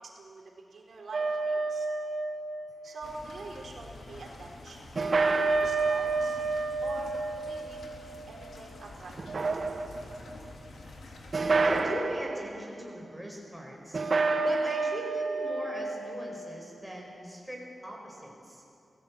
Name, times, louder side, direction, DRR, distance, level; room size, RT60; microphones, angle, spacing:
voice 1, 0.7-1.9 2.8-6.4 6.8-7.8 8.3-9.2, right 3 dB, 65° right, 0 dB, 4.1 m, -45 dB
sound 1, 1.1-3.2 5.0-8.7 9.2-10.2 11.3-12.5 13.9-16.7, right 3 dB, 40° right, 1.1 m, -29 dB
sound 2, 3.0-11.8, left 2 dB, 75° left, 3.6 m, -48 dB
voice 2, 11.6-14.0 14.4-18.6, equal, ahead, 0 dB, 5.2 m, -39 dB
28.0 x 18.5 x 8.6 m, 2.6 s
wide cardioid pair, 175°, 0 cm